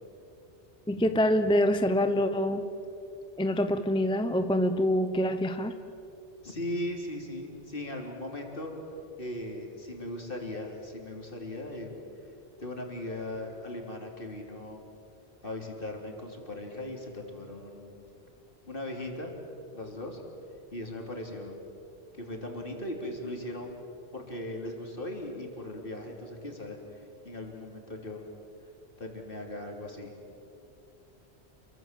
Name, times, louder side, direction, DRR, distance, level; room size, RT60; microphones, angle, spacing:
voice 1, 0.9-2.7 3.4-5.7, left 1 dB, 5° left, 8 dB, 0.8 m, -25 dB
voice 2, 6.4-8.7 9.2-12.0 12.6-14.8 15.4-18.1 18.7-19.3 19.7-20.2 20.7-21.6 22.1-23.8 24.1-26.8 27.2-28.2 29.0-30.1, left 1 dB, 50° left, 1 dB, 3.7 m, -38 dB
28.0 x 23.5 x 7.6 m, 2.7 s
omnidirectional pair, 1.1 m